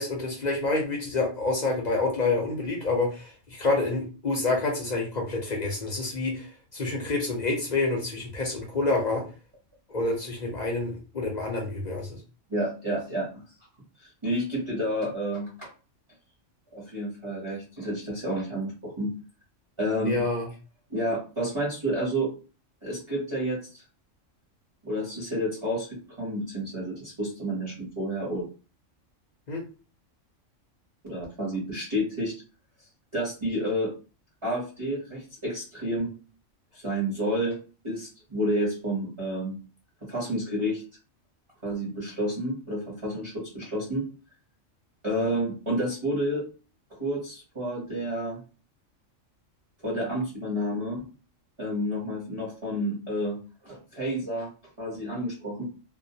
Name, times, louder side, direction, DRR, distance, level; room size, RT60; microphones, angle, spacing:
voice 1, 0.0-9.2 9.9-12.2 20.0-20.5 29.5-29.6, left 3 dB, 45° left, -1 dB, 0.6 m, -28 dB
voice 2, 12.5-13.4 14.0-15.7 16.7-19.1 19.8-20.3 20.9-22.3 22.8-23.8 24.8-28.5 31.0-32.3 33.1-33.9 34.4-36.1 36.7-37.6 37.8-39.6 40.0-40.8 41.6-44.1 45.0-46.5 46.9-48.4 49.8-51.0 51.6-54.5 54.8-55.6, equal, 30° right, -7 dB, 0.7 m, -30 dB
2.3 x 2.1 x 2.7 m, 0.35 s
omnidirectional pair, 1.3 m